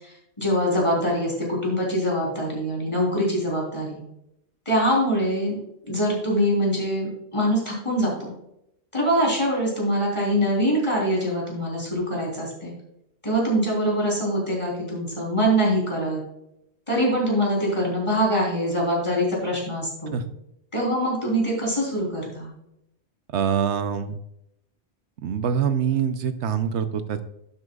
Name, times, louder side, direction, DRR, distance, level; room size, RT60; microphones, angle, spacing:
voice 1, 0.0-4.0 4.7-5.6 5.9-8.3 8.9-12.7 13.2-16.2 16.9-20.2 20.7-22.5, equal, 25° left, -3 dB, 3.7 m, -24 dB
voice 2, 23.3-24.1 25.2-27.2, right 7 dB, 85° right, 10 dB, 1.1 m, -24 dB
11.5 x 8.6 x 2.4 m, 0.80 s
omnidirectional pair, 1.1 m